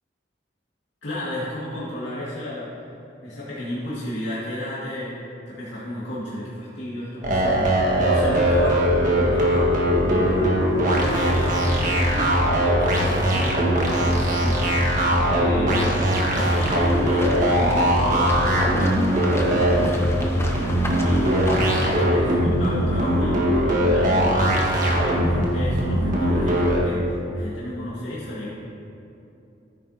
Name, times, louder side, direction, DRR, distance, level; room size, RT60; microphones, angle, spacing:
voice 1, 1.0-2.7 3.2-5.2 5.5-14.7 15.2-18.6 19.4-21.4 21.8-24.7 25.0-28.5, equal, 75° left, -9 dB, 2.2 m, -33 dB
sound 1, 7.2-26.8, equal, 45° right, 1.6 m, -20 dB
sound 2, 16.3-22.0, left 1 dB, 15° left, 0.9 m, -33 dB
14.0 x 9.2 x 2.9 m, 2.9 s
head